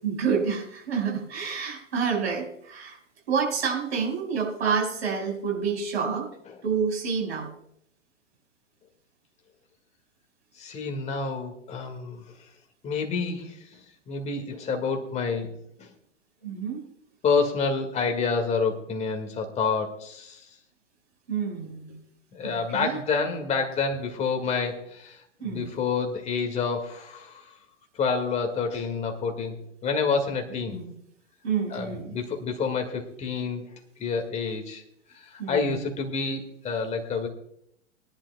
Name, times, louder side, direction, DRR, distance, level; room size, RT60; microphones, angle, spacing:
voice 1, 0.0-3.0 3.3-6.3 6.6-7.5 16.4-16.8 21.3-22.0 22.4-23.0 25.4-25.7 30.7-30.8 31.4-32.1 35.4-35.8, right 6 dB, 60° right, 0 dB, 5.2 m, -28 dB
voice 2, 10.6-12.2 12.8-13.6 14.1-15.9 17.2-20.4 22.3-27.4 28.0-29.6 29.8-30.8 31.7-33.6 34.0-34.8 35.2-37.3, left 5 dB, 20° left, 4 dB, 1.9 m, -28 dB
21.5 x 11.0 x 2.3 m, 0.72 s
figure-of-eight pair, 110°, 37 cm